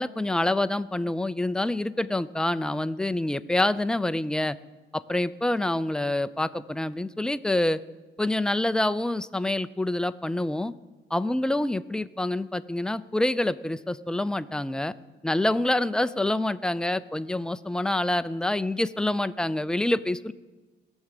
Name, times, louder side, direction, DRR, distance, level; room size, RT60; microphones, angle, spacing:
voice 1, 0.0-4.6 4.9-7.8 8.2-10.7 11.1-14.9 15.2-20.3, left 1 dB, 5° left, 13 dB, 0.4 m, -26 dB
18.5 x 7.2 x 6.6 m, 1.3 s
cardioid pair, 90°, 20 cm